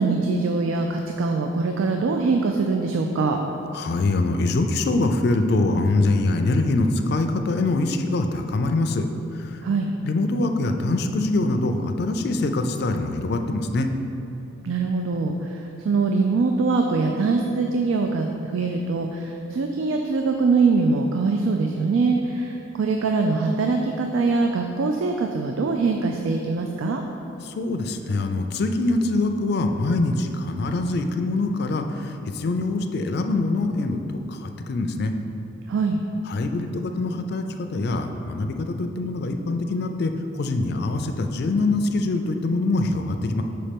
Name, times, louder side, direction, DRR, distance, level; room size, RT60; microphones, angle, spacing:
voice 1, 0.0-3.4 9.6-9.9 14.6-15.6 15.8-27.0 35.7-36.0, right 4 dB, 90° right, 3 dB, 0.4 m, -23 dB
voice 2, 3.7-9.1 9.4-9.6 10.0-13.9 27.4-35.1 36.3-43.4, left 2 dB, 55° left, 6 dB, 0.4 m, -24 dB
5.4 x 4.2 x 5.1 m, 2.8 s
head